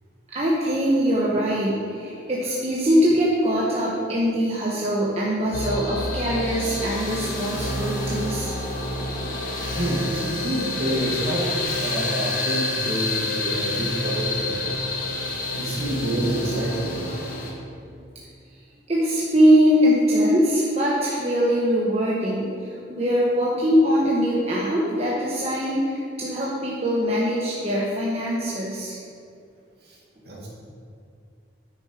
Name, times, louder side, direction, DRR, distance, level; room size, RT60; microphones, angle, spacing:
voice 1, 0.3-8.5 17.9-18.0 18.9-29.0, equal, 35° right, -5 dB, 1.1 m, -22 dB
sound 1, 5.5-17.5, left 2 dB, 50° left, 1.6 m, -28 dB
voice 2, 9.8-11.5 11.8-14.8 15.5-17.2 29.8-30.0 30.2-30.5, right 1 dB, 60° right, -5 dB, 2.3 m, -28 dB
9.3 x 6.4 x 4.8 m, 2.4 s
head